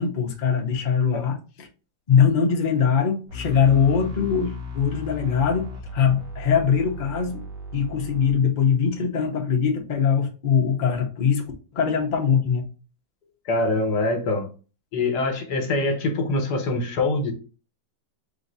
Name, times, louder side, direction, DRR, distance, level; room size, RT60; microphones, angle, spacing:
voice 1, 0.0-1.7 2.1-7.4 7.7-11.5 11.7-12.6, left 7 dB, 55° left, 0.5 m, -22 dB
sound 1, 3.3-8.3, left 2 dB, 75° right, 1.9 m, -36 dB
voice 2, 13.5-14.5 14.9-17.3, left 2 dB, 70° left, 1.4 m, -24 dB
3.9 x 2.7 x 3.9 m
omnidirectional pair, 1.9 m